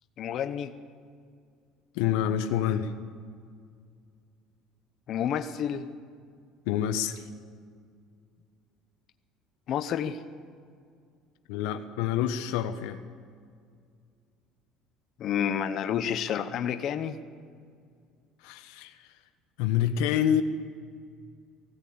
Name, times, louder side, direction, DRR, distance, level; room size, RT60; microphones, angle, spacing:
voice 1, 0.2-0.7 5.1-5.9 9.7-10.2 15.2-17.2, left 9 dB, 40° left, 8 dB, 0.8 m, -29 dB
voice 2, 1.9-2.9 6.7-7.2 11.5-13.0 18.4-18.9 19.6-20.4, left 10 dB, 85° left, 7 dB, 1.1 m, -27 dB
19.0 x 16.5 x 8.7 m, 2.2 s
cardioid pair, 180°, 0 cm